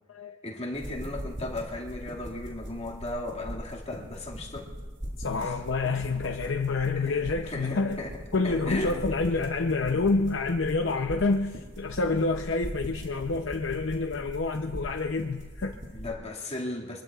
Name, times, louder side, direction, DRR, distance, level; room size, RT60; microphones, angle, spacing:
voice 1, 0.4-4.7 5.4-5.6 7.0-9.0 15.9-17.0, left 2 dB, 35° left, -2 dB, 2.2 m, -36 dB
sound 1, 0.7-16.1, equal, 40° right, 5.1 m, -41 dB
voice 2, 5.2-8.0 8.3-15.8, left 3 dB, 80° left, 3 dB, 0.7 m, -28 dB
24.5 x 23.0 x 2.4 m, 1.4 s
head